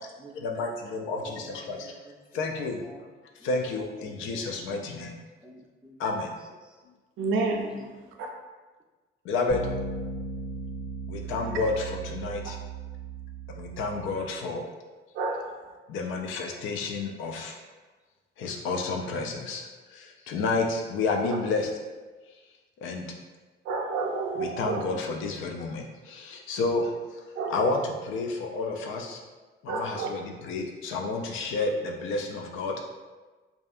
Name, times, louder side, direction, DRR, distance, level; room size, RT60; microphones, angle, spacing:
voice 1, 0.4-2.0 2.3-2.8 3.4-5.2 6.0-6.3 9.2-9.6 11.1-12.6 13.6-14.6 15.9-17.6 18.4-21.7 22.8-23.1 24.4-26.9 27.2-29.2 29.6-32.8, left 3 dB, 85° left, 2 dB, 0.4 m, -30 dB
voice 2, 1.0-2.4 2.8-3.0 3.4-3.6 4.0-4.4 5.4-6.0 6.6-6.7 7.7-8.1, right 2 dB, 5° right, 0 dB, 0.3 m, -48 dB
voice 3, 7.2-7.7 8.2-8.3 15.2-15.5 23.7-24.8 27.4-27.7 29.7-30.1, right 3 dB, 85° right, 1 dB, 0.4 m, -29 dB
sound 1, 9.5-14.3, right 3 dB, 55° left, 1.5 m, -37 dB
2.6 x 2.3 x 2.4 m, 1.3 s
cardioid pair, 90°, 20 cm